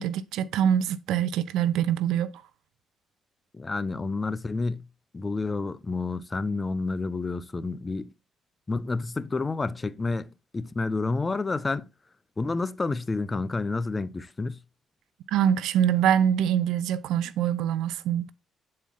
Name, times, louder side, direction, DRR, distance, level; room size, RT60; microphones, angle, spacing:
voice 1, 0.0-2.4 15.3-18.3, right 9 dB, 90° right, 0.5 m, -24 dB
voice 2, 3.5-4.8 5.1-8.1 8.7-10.3 10.5-11.9 12.4-14.6, left 3 dB, 25° left, 0.5 m, -29 dB
8.3 x 4.4 x 3.6 m
cardioid pair, 90°, 0 cm